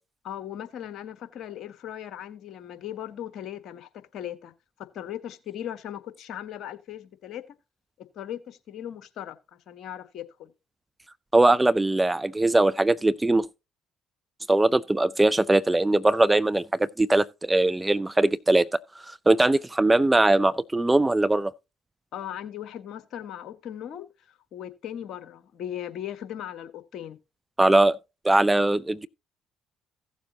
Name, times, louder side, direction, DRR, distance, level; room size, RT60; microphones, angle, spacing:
voice 1, 0.2-4.5 4.8-7.5 8.1-10.5 22.1-27.2, left 10 dB, 65° left, 1.3 m, -38 dB
voice 2, 11.3-13.5 14.5-18.7 19.1-21.5 27.6-28.0 28.2-29.1, right 2 dB, 15° right, 0.5 m, -21 dB
16.0 x 7.3 x 2.8 m
hypercardioid pair, 55°, 0 cm